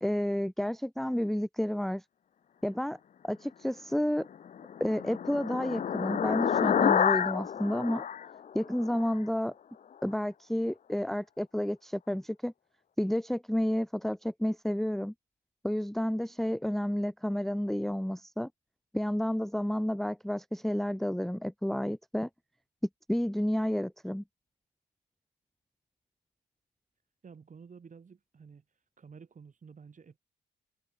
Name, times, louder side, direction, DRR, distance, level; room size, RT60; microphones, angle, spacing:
voice 1, 0.0-2.0 2.6-3.0 3.2-4.3 4.8-8.0 8.5-9.5 10.0-12.5 13.0-15.1 15.6-18.5 18.9-22.3 23.1-24.2, equal, ahead, 0.7 m, -31 dB
sound 1, 4.4-9.1, left 8 dB, 40° left, 0.5 m, -29 dB
voice 2, 27.2-28.6 29.0-30.2, right 6 dB, 40° right, 5.7 m, -51 dB
cardioid pair, 90°, 20 cm